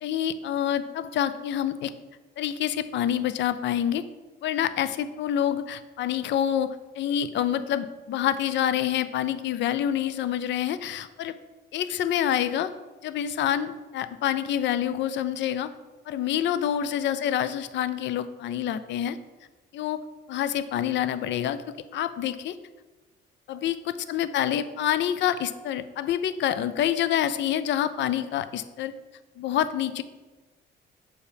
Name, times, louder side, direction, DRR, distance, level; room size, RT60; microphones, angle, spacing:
voice 1, 0.0-1.9 2.4-4.0 4.4-11.4 11.7-12.7 13.0-15.7 16.1-19.2 19.7-20.0 20.3-21.6 21.9-22.6 23.5-28.9 29.4-30.0, left 10 dB, 65° left, 13 dB, 0.4 m, -27 dB
6.9 x 4.4 x 3.4 m, 1.2 s
cardioid pair, 90°, 20 cm